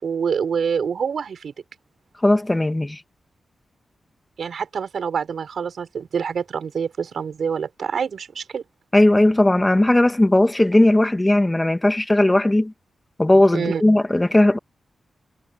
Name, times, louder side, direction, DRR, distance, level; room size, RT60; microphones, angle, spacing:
voice 1, 0.0-1.5 4.4-8.6 13.5-13.8, right 6 dB, 75° right, 6.4 m, -26 dB
voice 2, 2.2-3.0 8.9-12.7 13.2-14.6, left 1 dB, 15° left, 2.2 m, -17 dB
cardioid pair, 70°, 0 cm